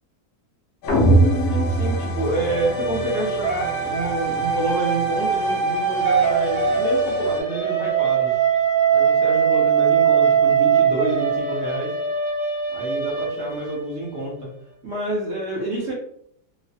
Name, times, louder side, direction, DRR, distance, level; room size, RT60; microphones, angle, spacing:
sound 1, 0.8-7.4, left 2 dB, 85° left, 1.2 m, -30 dB
sound 2, 0.9-3.0, right 2 dB, 65° left, 0.7 m, -19 dB
voice 1, 1.5-8.4 8.9-11.9 12.7-14.5 14.8-15.9, right 1 dB, 60° right, -3 dB, 0.8 m, -28 dB
sound 3, 2.4-14.2, right 7 dB, 35° left, 0.9 m, -22 dB
3.1 x 2.0 x 2.6 m, 0.67 s
omnidirectional pair, 1.7 m